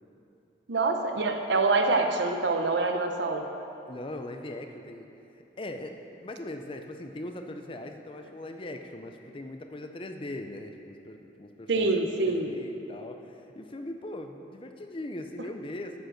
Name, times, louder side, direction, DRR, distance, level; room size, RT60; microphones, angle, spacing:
voice 1, 0.7-3.4 11.7-12.5, right 3 dB, 70° right, 5 dB, 0.7 m, -25 dB
voice 2, 3.9-5.1 5.6-11.9 12.3-16.0, left 1 dB, 30° left, 5 dB, 0.5 m, -40 dB
10.5 x 5.2 x 6.4 m, 2.9 s
head